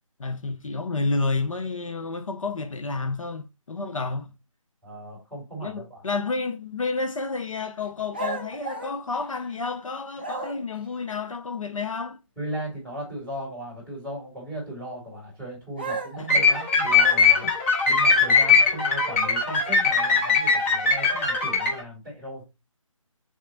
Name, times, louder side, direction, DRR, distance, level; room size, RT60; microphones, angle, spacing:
voice 1, 0.2-4.3 5.6-12.2 16.2-16.3 17.4-17.5, left 3 dB, 70° left, 0.6 m, -30 dB
voice 2, 4.8-6.1 12.4-17.5 17.9-22.4, right 1 dB, 5° left, 2.0 m, -37 dB
sound 1, 8.1-9.7 10.2-10.8 15.8-17.6, right 3 dB, 15° right, 0.3 m, -35 dB
sound 2, 16.3-21.8, left 4 dB, 25° left, 0.9 m, -20 dB
3.7 x 3.0 x 3.8 m
figure-of-eight pair, 155°, 18 cm